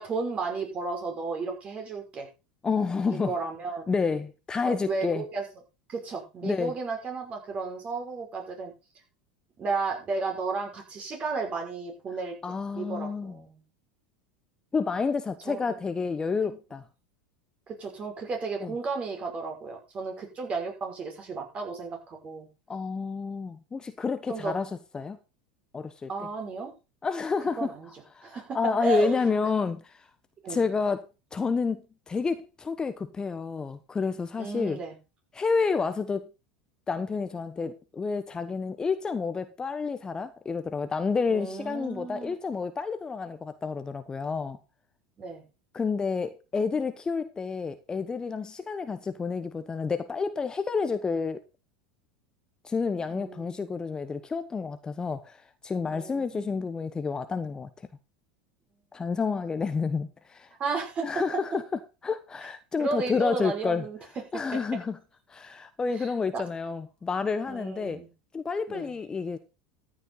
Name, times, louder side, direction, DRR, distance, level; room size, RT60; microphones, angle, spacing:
voice 1, 0.0-2.3 3.1-3.9 4.7-5.5 5.9-8.7 9.6-13.6 15.4-15.6 17.7-22.5 24.3-24.5 26.1-26.7 27.6-27.9 28.2-29.2 30.4-30.6 34.4-35.0 41.3-42.3 45.2-45.4 53.1-53.8 55.9-56.7 60.6-61.1 62.8-64.0 64.3-64.6 65.9-66.4 67.5-68.1 68.7-68.9, right 4 dB, 35° right, 5.9 m, -33 dB
voice 2, 2.6-3.3 3.9-5.2 6.4-6.7 12.4-13.3 14.7-16.8 18.6-18.7 22.7-25.2 25.7-26.1 27.0-27.7 28.1-30.0 30.5-31.1 31.3-34.8 35.3-36.3 36.9-44.6 45.7-51.4 52.6-57.7 58.9-60.5 61.0-61.6 62.0-63.8 64.3-65.0 65.3-68.0 68.3-69.4, left 5 dB, 20° left, 1.1 m, -29 dB
14.0 x 9.0 x 4.1 m
hypercardioid pair, 90°, 4 cm